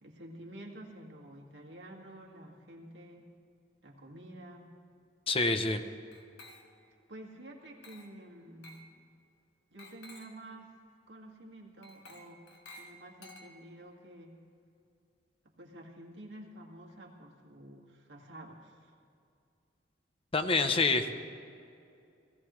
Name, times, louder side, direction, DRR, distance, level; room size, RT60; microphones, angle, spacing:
voice 1, 0.0-3.3 3.8-4.7 7.1-8.8 9.7-10.7 11.1-12.4 12.8-14.3 15.6-18.9, right 1 dB, 75° right, -1 dB, 1.9 m, -50 dB
voice 2, 5.3-5.8 20.3-21.1, left 3 dB, 30° left, 8 dB, 0.7 m, -27 dB
Glass, 6.1-7.0 7.8-8.2 8.6-8.9 9.8-10.4 11.8-13.9, left 1 dB, 65° left, 1.4 m, -53 dB
19.0 x 15.5 x 3.1 m, 2.5 s
head